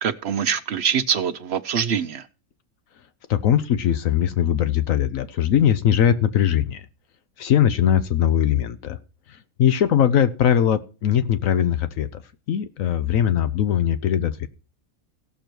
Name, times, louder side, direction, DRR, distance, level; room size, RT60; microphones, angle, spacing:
voice 1, 0.0-2.3, right 7 dB, 55° right, 0.8 m, -24 dB
voice 2, 3.3-6.8 7.4-9.0 9.6-12.1 12.5-14.5, left 9 dB, 70° left, 1.1 m, -20 dB
16.5 x 6.6 x 4.5 m
omnidirectional pair, 1.5 m